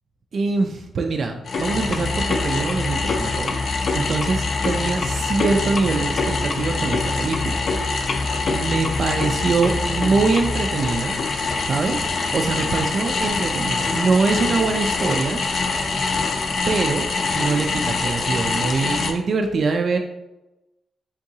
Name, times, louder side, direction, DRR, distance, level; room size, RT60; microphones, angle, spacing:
voice 1, 0.3-3.6 3.9-7.6 7.8-11.2 11.6-15.4 15.7-16.0 16.7-20.0, right 4 dB, 50° right, 3 dB, 0.3 m, -24 dB
sound 1, 1.5-19.1, left 3 dB, 50° left, 0.4 m, -24 dB
3.8 x 3.6 x 2.7 m, 0.97 s
cardioid pair, 130°, 0 cm